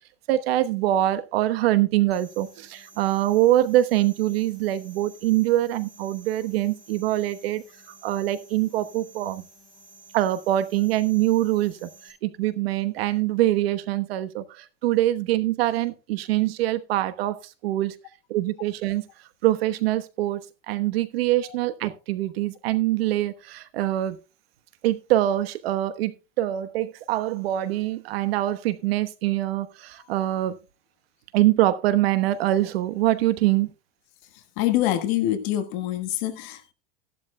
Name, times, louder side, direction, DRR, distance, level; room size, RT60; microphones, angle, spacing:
voice 1, 0.3-7.6 8.0-9.4 10.1-17.9 18.3-19.0 19.4-24.2 24.8-30.6 31.3-33.7, right 14 dB, 70° right, 1.2 m, -24 dB
sound 1, 2.1-12.1, right 2 dB, ahead, 4.6 m, -52 dB
voice 2, 34.6-36.7, left 13 dB, 45° left, 1.5 m, -25 dB
15.0 x 11.5 x 2.2 m
supercardioid pair, 165°, 31 cm